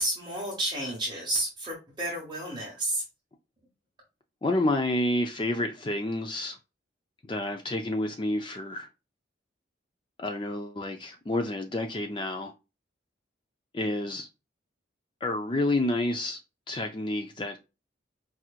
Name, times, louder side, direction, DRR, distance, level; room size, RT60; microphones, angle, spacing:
voice 1, 0.0-3.0, right 1 dB, 20° right, 1.2 m, -31 dB
voice 2, 4.4-6.6 7.3-8.9 10.2-12.5 13.7-14.3 15.2-16.4 16.7-17.6, left 1 dB, 25° left, 0.4 m, -29 dB
4.7 x 3.0 x 2.4 m
head